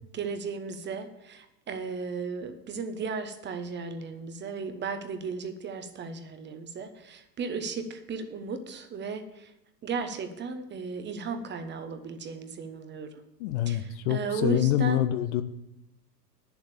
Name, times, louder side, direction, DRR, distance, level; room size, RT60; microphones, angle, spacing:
voice 1, 0.1-9.5 9.8-13.2 13.7-15.2, right 4 dB, 20° right, 8 dB, 1.0 m, -35 dB
voice 2, 13.4-15.4, left 13 dB, 45° left, 11 dB, 0.7 m, -26 dB
9.3 x 7.1 x 7.0 m, 0.84 s
figure-of-eight pair, 95°, 50 cm